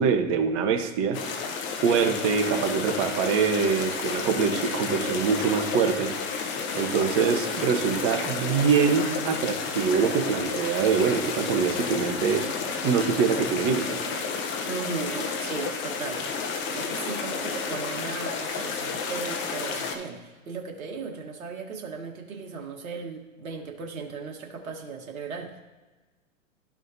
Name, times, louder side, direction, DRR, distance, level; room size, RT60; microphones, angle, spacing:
voice 1, 0.0-1.4 1.8-6.1 6.7-12.5 12.8-14.0, right 6 dB, 35° right, 5 dB, 1.1 m, -24 dB
sound 1, 1.1-20.0, left 5 dB, 30° left, 0.9 m, -31 dB
voice 2, 14.7-25.6, right 5 dB, 85° right, 1 dB, 1.4 m, -37 dB
12.5 x 5.0 x 2.7 m, 1.2 s
hypercardioid pair, 120°, 40 cm